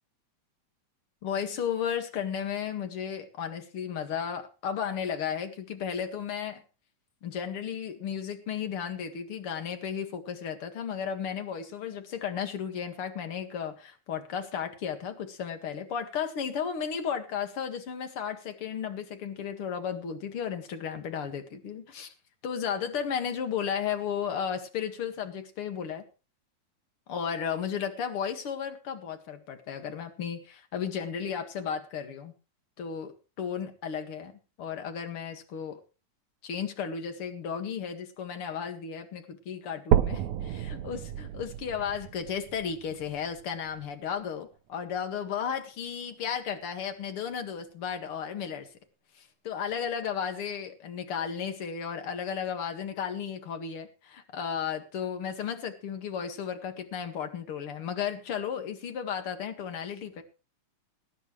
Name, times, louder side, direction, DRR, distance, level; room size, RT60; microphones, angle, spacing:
voice 1, 1.2-6.6 7.2-22.1 22.4-26.0 27.1-32.3 32.8-35.8 36.4-48.7 49.2-60.2, left 7 dB, 50° left, 7 dB, 2.6 m, -34 dB
sound 1, 39.9-43.9 44.5-44.6 45.1-45.2 45.6-45.7 46.5-46.6, right 11 dB, 75° right, 2.1 m, -30 dB
20.5 x 10.0 x 3.2 m, 0.33 s
omnidirectional pair, 3.4 m